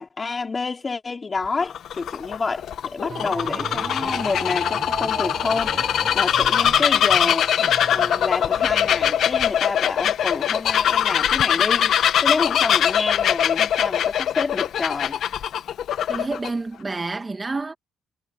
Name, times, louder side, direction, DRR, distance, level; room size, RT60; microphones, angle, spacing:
voice 1, 0.0-7.6 7.9-15.2, left 4 dB, 30° left, 4.1 m, -28 dB
Bird vocalization bird call bird song, 1.5-16.5, left 10 dB, 65° left, 1.6 m, -22 dB
sound 1, 3.1-9.6, right 5 dB, 40° right, 1.6 m, -37 dB
voice 2, 16.1-17.7, right 3 dB, 25° right, 2.2 m, -29 dB
cardioid pair, 80°, 0 cm